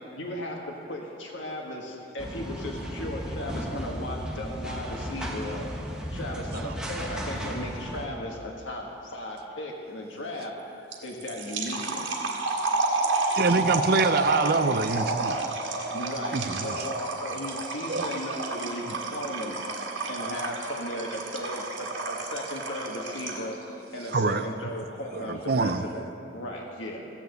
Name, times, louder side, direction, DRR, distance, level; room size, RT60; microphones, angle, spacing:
voice 1, 0.2-5.7 6.1-10.5 11.0-12.2 15.9-19.6 20.1-23.6 23.9-27.1, left 1 dB, 80° left, 0 dB, 1.5 m, -36 dB
voice 2, 0.9-1.4 2.4-2.5 3.4-3.5 5.9-6.2 8.5-8.8 10.1-10.2 10.6-11.1 11.4-11.5 11.9-13.4 15.4-16.1 17.4-18.2 19.0-20.1 21.1-21.2 21.9-22.3 23.2-24.0 25.1-25.2 26.8-26.9, left 3 dB, 45° left, 5 dB, 0.6 m, -58 dB
sound 1, 2.2-8.1, equal, 5° right, 1.2 m, -35 dB
sound 2, 10.9-23.5, right 3 dB, 70° right, 1.8 m, -30 dB
voice 3, 13.4-15.5 16.3-16.8 17.9-18.1 24.1-24.5 25.1-25.8, right 3 dB, 55° right, 9 dB, 0.6 m, -25 dB
15.5 x 7.3 x 8.0 m, 2.7 s
head